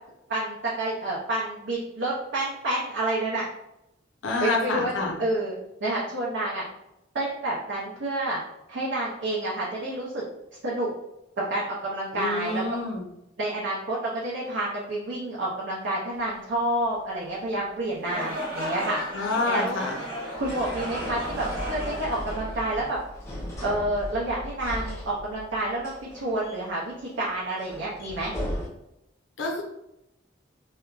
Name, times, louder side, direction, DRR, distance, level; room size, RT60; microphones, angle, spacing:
voice 1, 0.3-3.4 4.4-4.9 5.2-6.6 7.1-8.4 8.7-10.2 10.6-10.9 11.4-12.6 13.4-19.0 19.5-19.8 20.3-23.0 23.6-28.3, right 1 dB, 70° right, -5 dB, 0.5 m, -29 dB
voice 2, 4.2-5.1 12.1-13.0 19.1-20.0 29.4-29.6, left 3 dB, 80° left, 0 dB, 0.5 m, -27 dB
sound 1, 16.1-28.7, equal, 15° left, 0.6 m, -38 dB
sound 2, 18.0-23.2, equal, 55° right, 1.0 m, -35 dB
2.8 x 2.1 x 2.3 m, 0.86 s
head